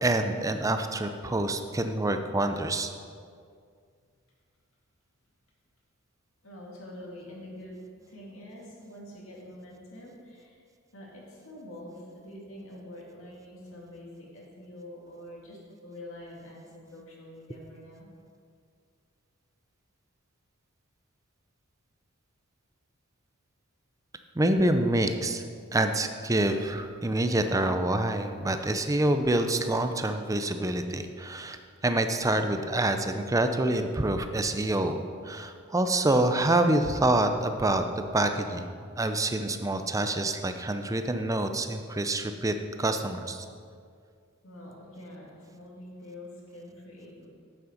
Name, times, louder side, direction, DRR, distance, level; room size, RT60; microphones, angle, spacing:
voice 1, 0.0-2.9 24.4-25.4 25.7-31.6 31.8-37.8 38.1-38.7 39.0-43.4, right 1 dB, 15° right, 7 dB, 0.5 m, -26 dB
voice 2, 6.4-10.6 10.9-18.1 44.4-47.3, left 1 dB, 65° left, -3 dB, 2.4 m, -46 dB
8.6 x 7.7 x 5.1 m, 2.2 s
head